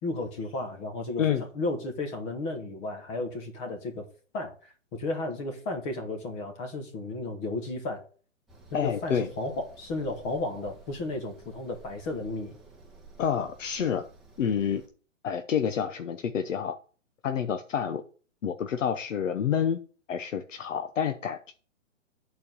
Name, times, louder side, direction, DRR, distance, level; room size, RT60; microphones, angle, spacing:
voice 1, 0.0-4.1 4.3-8.0 8.7-12.6, left 2 dB, 20° left, 4 dB, 1.2 m, -33 dB
sound 1, 8.5-14.9, right 3 dB, ahead, 1.1 m, -53 dB
voice 2, 8.7-9.3 13.2-14.0 14.4-14.8 15.2-16.8 17.2-18.0 18.4-19.8 20.1-21.5, left 8 dB, 75° left, 8 dB, 0.9 m, -28 dB
8.5 x 4.7 x 6.8 m, 0.41 s
hypercardioid pair, 155°, 38 cm